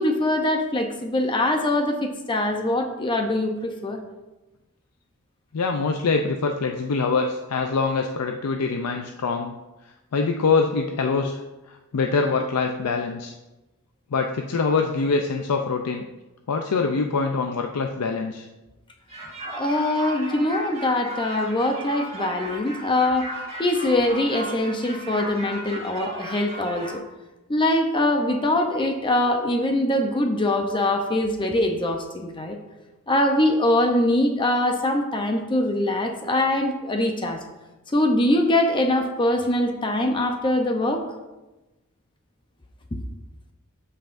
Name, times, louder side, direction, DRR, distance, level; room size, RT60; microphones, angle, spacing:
voice 1, 0.0-4.0 19.5-23.3 23.6-27.0 27.5-32.6 33.1-37.4 37.9-41.0, left 1 dB, 20° left, 4 dB, 0.6 m, -23 dB
voice 2, 5.5-9.5 10.1-11.4 11.7-13.3 14.1-16.0 16.5-18.5, left 4 dB, 80° left, 4 dB, 0.5 m, -24 dB
sound 1, 19.1-26.9, right 1 dB, 30° right, 1.6 m, -36 dB
12.5 x 5.6 x 2.6 m, 1.1 s
head